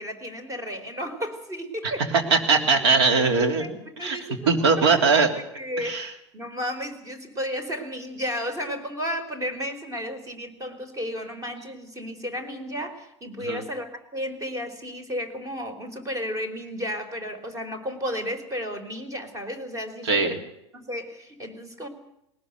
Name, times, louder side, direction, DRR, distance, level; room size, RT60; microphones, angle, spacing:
voice 1, 0.0-2.4 3.4-3.7 4.0-5.9 6.3-20.4 20.7-21.9, equal, 20° right, 10 dB, 4.1 m, -33 dB
voice 2, 2.3-4.2 4.5-5.3 5.8-6.1 13.4-13.6 20.0-20.3, right 4 dB, 60° right, 6 dB, 3.3 m, -21 dB
20.0 x 19.5 x 8.1 m, 0.82 s
figure-of-eight pair, 90°, 15 cm